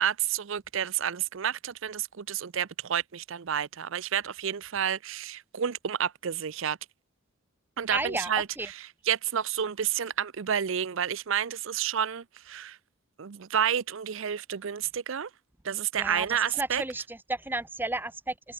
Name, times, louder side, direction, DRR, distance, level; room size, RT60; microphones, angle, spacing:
voice 1, 0.0-6.8 7.8-8.7 9.1-12.8 13.2-15.3 15.6-16.8, right 8 dB, 60° right, 0.5 m, -30 dB
voice 2, 7.9-8.7 16.0-18.5, right 2 dB, 10° right, 1.1 m, -33 dB
head